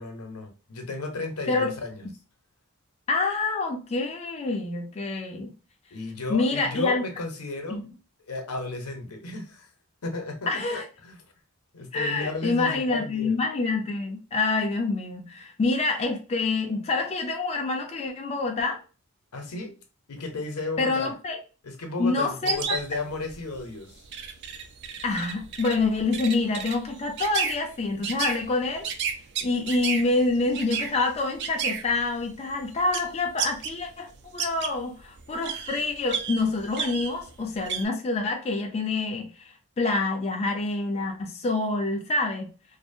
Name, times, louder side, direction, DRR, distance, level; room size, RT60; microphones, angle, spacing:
voice 1, 0.0-2.1 5.9-7.8 8.2-9.7 10.0-11.2 11.7-13.4 19.3-19.7 20.1-21.1 21.6-23.9, left 2 dB, 85° left, 0.7 m, -34 dB
voice 2, 3.1-5.5 6.3-7.0 7.7-7.8 10.5-10.8 11.9-18.8 20.8-21.4 22.0-22.8 25.0-28.9 29.4-39.3 39.8-42.5, left 3 dB, 30° left, 0.3 m, -27 dB
sound 1, 22.5-33.8 34.1-37.9, right 7 dB, 50° right, 0.3 m, -33 dB
2.5 x 2.0 x 2.5 m
head